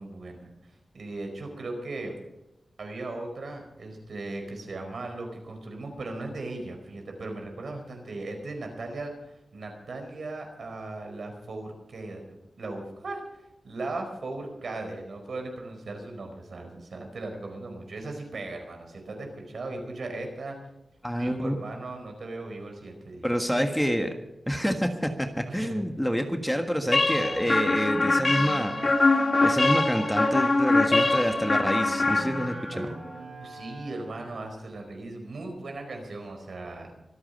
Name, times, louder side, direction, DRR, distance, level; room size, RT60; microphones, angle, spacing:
voice 1, 0.0-2.2 2.8-9.1 9.5-12.2 12.6-20.6 21.2-23.3 25.5-25.8 32.5-36.9, right 2 dB, 70° right, 3 dB, 4.7 m, -38 dB
voice 2, 21.0-21.5 23.2-24.1 24.5-29.1 29.4-32.9, equal, ahead, 5 dB, 1.6 m, -27 dB
sound 1, 26.9-32.8, left 2 dB, 40° left, 1.4 m, -23 dB
Wind instrument woodwind instrument, 27.0-34.4, right 1 dB, 85° right, 4.4 m, -39 dB
24.5 x 8.7 x 5.5 m, 0.91 s
wide cardioid pair, 85°, 0 cm